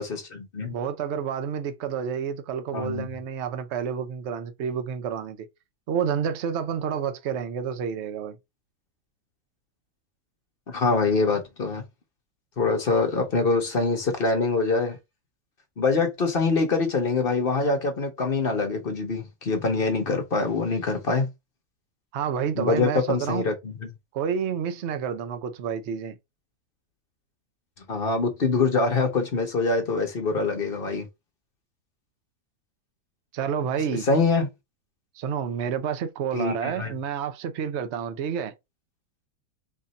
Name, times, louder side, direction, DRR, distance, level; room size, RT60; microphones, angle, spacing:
voice 1, 0.0-0.7 2.7-3.1 10.7-11.8 12.6-15.0 15.8-21.3 22.6-23.7 27.9-31.1 34.0-34.5 36.3-36.9, left 3 dB, 45° left, 0.9 m, -24 dB
voice 2, 0.7-5.5 5.9-8.4 22.1-23.4 24.1-26.2 33.3-34.1 35.2-38.5, right 7 dB, 55° right, 0.8 m, -29 dB
3.5 x 2.6 x 4.0 m
omnidirectional pair, 1.7 m